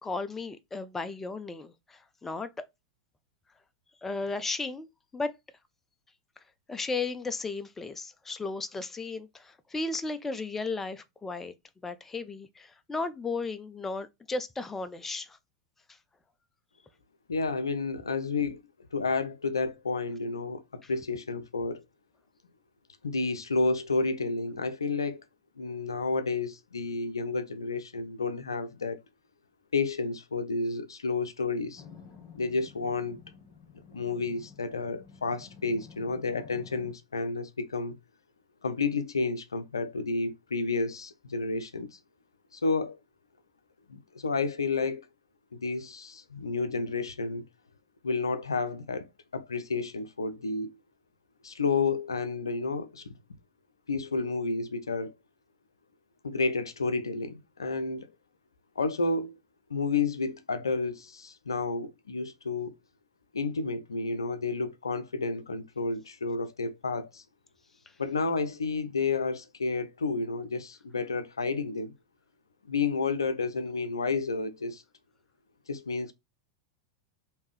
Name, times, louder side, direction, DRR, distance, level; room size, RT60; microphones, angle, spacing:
voice 1, 0.0-2.6 4.0-4.9 5.1-5.3 6.7-11.5 11.8-15.4 20.8-20.9, left 3 dB, 15° left, 0.4 m, -35 dB
voice 2, 17.3-18.6 18.9-21.8 23.0-25.2 25.6-29.0 29.7-31.8 32.3-33.2 33.9-38.0 38.6-42.0 42.5-43.0 43.9-45.1 45.5-47.4 48.0-49.1 49.3-50.8 51.4-53.1 53.9-55.1 56.2-58.1 58.8-59.4 59.7-62.8 63.3-67.2 68.0-71.9 72.6-74.8 75.7-76.1, left 4 dB, 85° left, 0.5 m, -31 dB
sound 1, 31.8-36.9, left 6 dB, 35° left, 1.0 m, -51 dB
3.5 x 2.8 x 3.1 m
hypercardioid pair, 95°, 2 cm